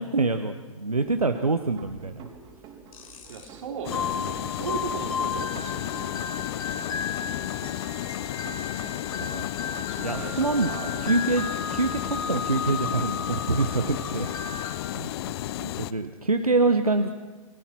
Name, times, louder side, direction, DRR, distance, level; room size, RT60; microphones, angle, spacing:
voice 1, 0.0-2.3 9.3-9.5 10.0-10.7 11.0-14.3 14.9-15.3 15.6-17.1, right 3 dB, 90° right, 8 dB, 1.3 m, -26 dB
sound 1, 1.0-12.3, right 6 dB, 30° right, 4.1 m, -48 dB
sound 2, 2.9-3.5 3.9-14.8, left 6 dB, 75° left, 4.2 m, -34 dB
voice 2, 3.3-6.7 9.8-11.0, right 6 dB, 60° right, 3 dB, 4.4 m, -38 dB
sound 3, 3.8-15.9, left 13 dB, 45° left, 0.8 m, -33 dB
30.0 x 20.5 x 6.1 m, 1.3 s
figure-of-eight pair, 115°, 18 cm